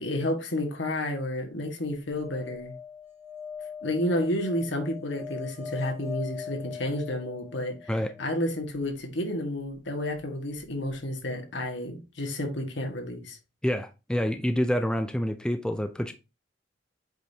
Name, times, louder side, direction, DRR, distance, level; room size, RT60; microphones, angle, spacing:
voice 1, 0.0-2.7 3.8-7.9 8.2-13.4, left 1 dB, 75° left, 1.7 m, -31 dB
sound 1, 2.1-8.3 10.6-10.7 10.9-11.0, left 7 dB, 30° right, 2.0 m, -41 dB
voice 2, 13.6-16.1, equal, 5° left, 0.5 m, -27 dB
7.9 x 5.1 x 2.8 m
head